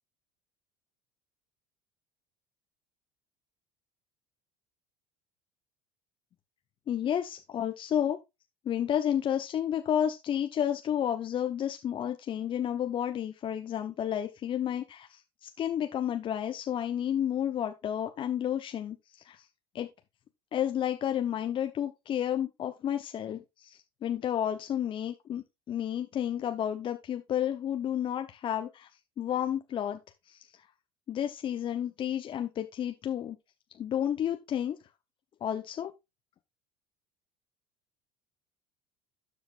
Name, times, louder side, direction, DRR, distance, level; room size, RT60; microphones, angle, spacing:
voice 1, 6.9-8.2 8.6-19.0 19.3-19.4 19.7-19.9 20.5-28.9 29.2-30.0 30.3-30.4 31.1-33.4 33.8-34.8 35.4-35.9, left 10 dB, 40° left, 1.0 m, -31 dB
12.5 x 5.1 x 2.5 m
hypercardioid pair, 75°, 12 cm